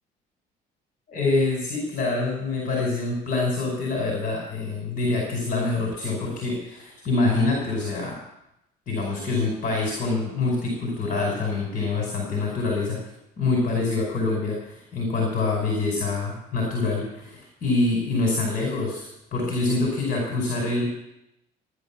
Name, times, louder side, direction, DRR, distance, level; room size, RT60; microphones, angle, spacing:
voice 1, 1.1-8.2 8.9-13.0 13.4-20.8, left 3 dB, 55° left, -1 dB, 5.2 m, -25 dB
15.5 x 11.0 x 7.2 m, 0.85 s
cardioid pair, 110°, 17 cm